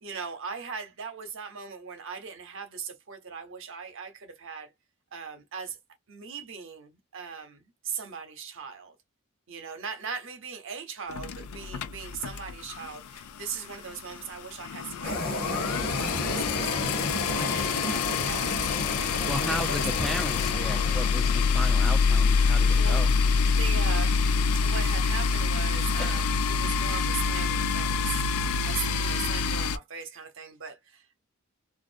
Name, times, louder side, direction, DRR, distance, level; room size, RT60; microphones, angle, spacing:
voice 1, 0.0-4.7 5.1-5.8 6.1-9.0 9.5-16.7 17.4-18.7 19.0-19.9 22.7-23.2 23.4-28.2 28.6-31.2, right 6 dB, 60° right, 0.8 m, -39 dB
sound 1, 11.1-12.9 13.2-13.4 13.7-13.8 14.0-29.8, left 5 dB, 80° left, 0.4 m, -26 dB
sound 2, 15.0-21.5, left 1 dB, 45° left, 0.9 m, -32 dB
voice 2, 19.3-23.1 26.0-26.3, equal, ahead, 0.3 m, -34 dB
2.4 x 2.0 x 2.5 m
head